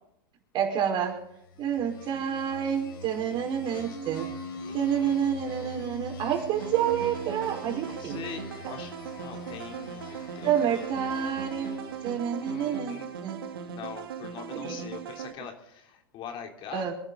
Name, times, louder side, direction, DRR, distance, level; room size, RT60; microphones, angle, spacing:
voice 1, 0.5-1.2 1.6-4.4 4.7-8.2 10.4-13.5 14.5-14.9 16.7-16.9, right 8 dB, 40° right, 3 dB, 5.0 m, -29 dB
sound 1, 1.5-12.4, right 1 dB, 65° left, 4.5 m, -42 dB
voice 2, 4.6-5.3 7.8-11.1 12.4-13.2 13.7-16.8, left 7 dB, 40° left, 4 dB, 3.6 m, -43 dB
sound 2, 6.6-15.3, right 6 dB, 75° right, 2.6 m, -39 dB
26.0 x 11.5 x 4.1 m, 0.75 s
hypercardioid pair, 105°, 12 cm